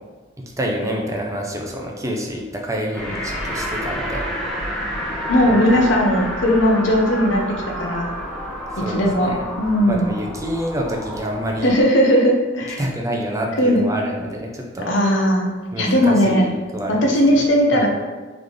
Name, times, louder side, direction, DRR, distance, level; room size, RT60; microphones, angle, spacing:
voice 1, 0.6-4.3 5.5-5.8 8.7-9.4 9.9-11.7 12.8-14.9 15.7-17.1 17.7-17.9, equal, 15° right, 0 dB, 0.5 m, -27 dB
sound 1, 2.9-11.8, equal, ahead, 0.8 m, -29 dB
voice 2, 5.3-7.4 7.8-8.1 8.9-10.1 11.6-12.8 13.6-13.9 14.9-15.5 15.8-16.5 16.9-17.9, equal, 70° left, 1 dB, 0.7 m, -17 dB
3.9 x 3.5 x 3.1 m, 1.3 s
head